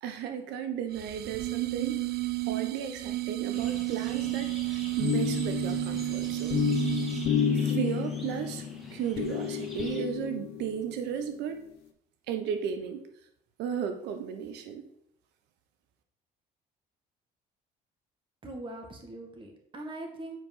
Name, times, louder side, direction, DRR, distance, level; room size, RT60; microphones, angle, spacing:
voice 1, 0.0-2.2 2.5-6.6 7.5-8.6 8.9-11.6 12.3-13.0 13.6-14.9, right 8 dB, 90° right, 7 dB, 1.0 m, -34 dB
sound 1, 0.9-7.4, right 20 dB, 70° right, 0.5 m, -32 dB
sound 2, 3.5-10.0, left 1 dB, ahead, 2.1 m, -46 dB
sound 3, 5.0-11.1, left 7 dB, 75° left, 1.0 m, -30 dB
voice 2, 18.4-20.4, right 2 dB, 30° right, 3 dB, 2.1 m, -41 dB
7.9 x 4.7 x 5.5 m, 0.72 s
cardioid pair, 110°, 17 cm